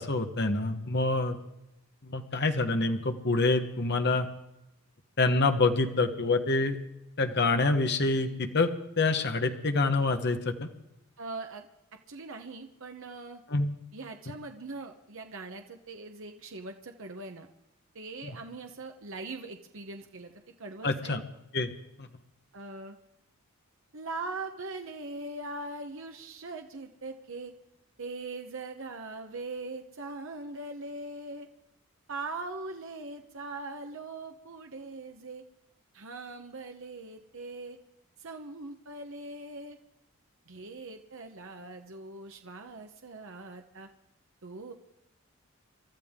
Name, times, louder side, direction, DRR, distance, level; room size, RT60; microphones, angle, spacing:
voice 1, 0.0-1.4 2.0-4.3 5.2-6.8 7.2-8.7 9.0-10.7 13.5-13.7 18.2-18.3 20.8-21.2 21.5-21.7 22.0-22.1, left 3 dB, 50° left, 6 dB, 1.3 m, -26 dB
voice 2, 11.2-11.7 12.1-13.4 13.9-17.5 17.9-20.3 20.6-21.2 22.5-23.0 23.9-27.5 28.0-31.5 32.1-35.4 35.9-37.8 38.2-39.8 40.5-43.9 44.4-44.7, right 3 dB, 60° right, 4 dB, 1.0 m, -41 dB
28.0 x 13.0 x 3.7 m, 0.90 s
head